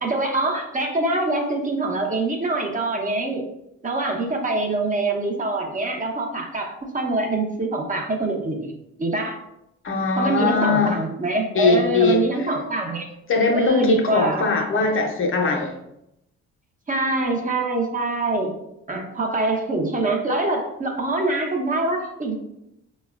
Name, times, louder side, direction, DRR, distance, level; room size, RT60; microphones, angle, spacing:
voice 1, 0.0-3.4 3.8-8.7 9.0-9.4 10.2-13.1 13.5-14.5 16.9-18.5 18.9-22.3, right 2 dB, 25° right, 1 dB, 0.6 m, -24 dB
voice 2, 9.8-11.0 11.5-12.2 13.3-15.7, left 3 dB, 45° left, 2 dB, 0.5 m, -20 dB
4.1 x 2.1 x 2.3 m, 0.84 s
cardioid pair, 90°, 30 cm